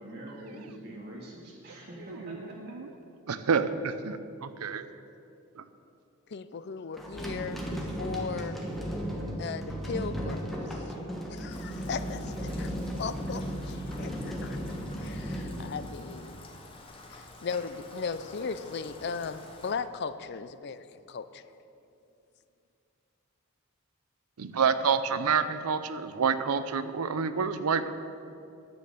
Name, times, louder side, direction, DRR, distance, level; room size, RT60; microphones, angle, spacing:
voice 1, 0.0-2.7, right 1 dB, 45° right, -4 dB, 1.9 m, -44 dB
voice 2, 3.3-4.9 24.4-27.9, right 6 dB, 85° right, 12 dB, 0.6 m, -28 dB
voice 3, 6.3-8.6 9.4-10.4 11.3-12.7 13.0-13.4 14.0-14.6 15.0-16.4 17.4-20.8 21.1-21.2, left 5 dB, 50° left, 13 dB, 0.4 m, -36 dB
sound 1, 7.0-16.4, equal, ahead, 1.1 m, -35 dB
Rain, 11.5-19.7, left 2 dB, 25° left, 0.9 m, -50 dB
10.5 x 7.8 x 6.7 m, 2.7 s
head